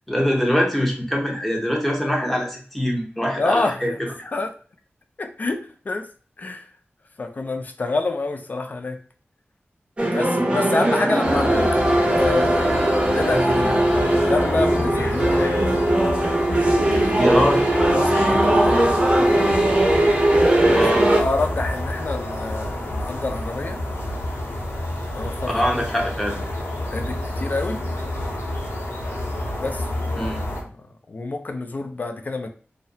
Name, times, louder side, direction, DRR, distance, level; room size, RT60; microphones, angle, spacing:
voice 1, 0.1-4.1 17.2-17.7 20.6-21.1 25.5-26.3 30.2-30.4, equal, 5° left, -1 dB, 0.7 m, -23 dB
voice 2, 3.4-4.5 5.2-6.1 6.4-6.6 7.2-9.0 10.1-11.8 12.2-15.5 16.9-17.3 17.9-18.9 20.6-23.8 25.1-25.8 26.9-27.8 29.6-32.5, left 3 dB, 45° left, 6 dB, 0.3 m, -28 dB
sound 1, 10.0-21.2, right 1 dB, 30° right, 0.6 m, -19 dB
sound 2, 11.2-30.6, left 1 dB, 90° left, 0.7 m, -29 dB
2.7 x 2.0 x 2.6 m, 0.41 s
wide cardioid pair, 100°, 4 cm